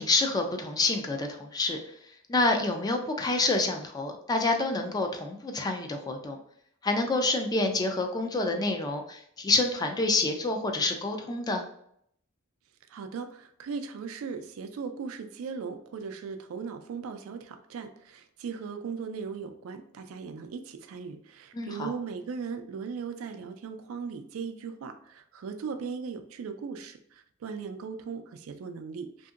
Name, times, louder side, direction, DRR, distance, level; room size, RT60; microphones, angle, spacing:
voice 1, 0.0-1.8 2.3-6.4 6.8-11.6 21.5-21.9, left 2 dB, 20° left, 4 dB, 0.3 m, -27 dB
voice 2, 12.9-29.3, right 5 dB, 75° right, 7 dB, 0.3 m, -38 dB
2.8 x 2.6 x 2.4 m, 0.68 s
head